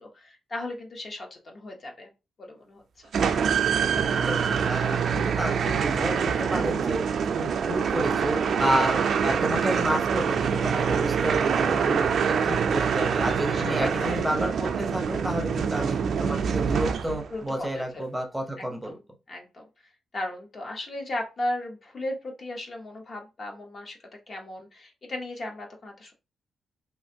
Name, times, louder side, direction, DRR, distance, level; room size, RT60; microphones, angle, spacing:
voice 1, 0.0-2.1 2.4-2.8 7.2-7.4 8.9-9.0 13.5-14.2 17.3-18.2 18.6-19.0 19.3-26.1, left 1 dB, 45° left, 2 dB, 0.8 m, -36 dB
sound 1, 3.1-17.4, right 6 dB, 65° right, 0.3 m, -25 dB
voice 2, 4.3-19.0, equal, 5° right, 2 dB, 0.6 m, -31 dB
3.1 x 2.5 x 2.7 m, 0.28 s
cardioid pair, 120°, 0 cm